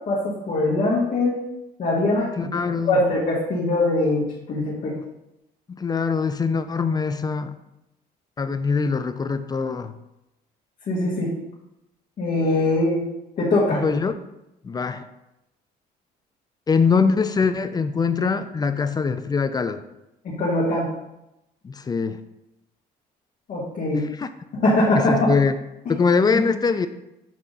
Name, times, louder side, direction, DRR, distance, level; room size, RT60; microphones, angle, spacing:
voice 1, 0.1-1.4 1.8-2.5 2.9-4.9 10.9-11.3 12.2-13.0 13.4-13.8 20.3-20.9 23.5-24.0 24.6-25.3 25.9-26.0 26.3-26.4, left 2 dB, 45° left, -6 dB, 1.7 m, -22 dB
voice 2, 2.4-3.0 5.0-5.1 5.7-7.5 8.4-9.9 13.7-14.1 14.6-15.1 16.7-19.8 21.6-22.2 23.9-24.3 24.9-25.6 25.9-26.9, left 5 dB, 25° left, 11 dB, 0.4 m, -23 dB
7.6 x 3.6 x 4.0 m, 0.90 s
cardioid pair, 110°, 17 cm